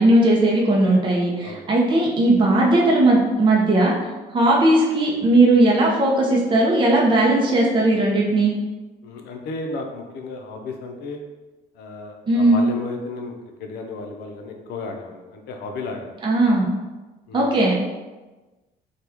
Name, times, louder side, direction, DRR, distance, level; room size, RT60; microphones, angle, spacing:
voice 1, 0.0-3.9 4.3-8.5 12.3-12.6 16.2-16.7 17.3-17.7, right 2 dB, 30° right, -2 dB, 0.6 m, -17 dB
voice 2, 9.0-11.2 11.8-13.3 13.6-16.2 17.3-17.6, left 3 dB, 75° left, 3 dB, 0.5 m, -33 dB
2.9 x 2.3 x 3.4 m, 1.2 s
cardioid pair, 110°, 17 cm